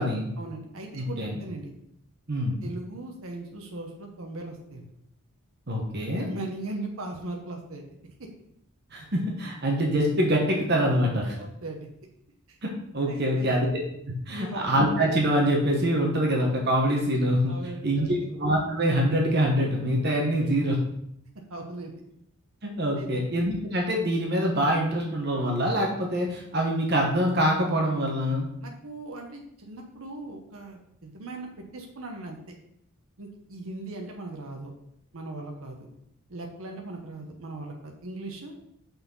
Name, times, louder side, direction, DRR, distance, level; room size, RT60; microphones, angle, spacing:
voice 1, 0.4-1.7 2.6-4.9 6.2-7.9 11.4-11.9 12.5-12.6 13.0-13.6 14.3-14.7 17.5-18.1 21.5-21.9 23.0-23.2 28.6-32.5 33.2-34.7 35.1-35.9 36.3-38.5, right 2 dB, 65° right, 1 dB, 1.0 m, -39 dB
voice 2, 0.9-1.4 2.3-2.6 5.7-6.3 8.9-11.4 12.6-12.7 12.9-13.7 14.1-17.5 17.8-20.8 22.6-28.5, equal, 45° right, 0 dB, 1.1 m, -25 dB
5.9 x 4.3 x 5.4 m, 0.75 s
head